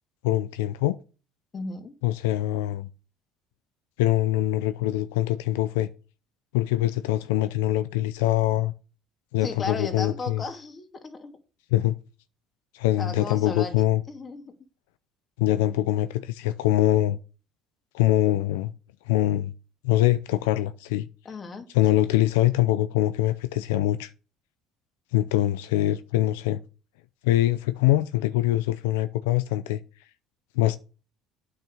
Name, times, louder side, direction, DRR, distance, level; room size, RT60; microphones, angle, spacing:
voice 1, 0.2-1.0 2.0-2.9 4.0-5.9 6.5-8.7 9.3-10.4 11.7-11.9 12.7-14.0 15.4-17.2 17.9-18.7 19.1-19.5 19.8-21.1 21.7-24.1 25.1-26.6 27.2-29.8 30.6-30.8, left 14 dB, 85° left, 0.5 m, -23 dB
voice 2, 1.5-1.9 9.4-11.4 13.0-14.5 21.2-22.0, left 3 dB, 35° left, 2.4 m, -35 dB
9.2 x 5.9 x 6.4 m
supercardioid pair, 80°, 0 cm